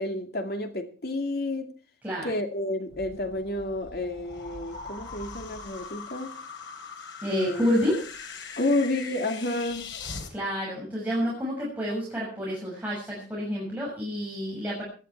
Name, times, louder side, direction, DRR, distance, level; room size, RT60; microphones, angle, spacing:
voice 1, 0.0-1.7 2.2-6.3 7.3-7.7 8.6-9.9, left 2 dB, 55° left, 2.3 m, -30 dB
sound 1, 2.9-10.3, left 4 dB, 90° left, 3.5 m, -41 dB
voice 2, 7.2-8.0 10.3-14.8, equal, 10° right, 6.5 m, -29 dB
17.5 x 12.5 x 4.6 m
head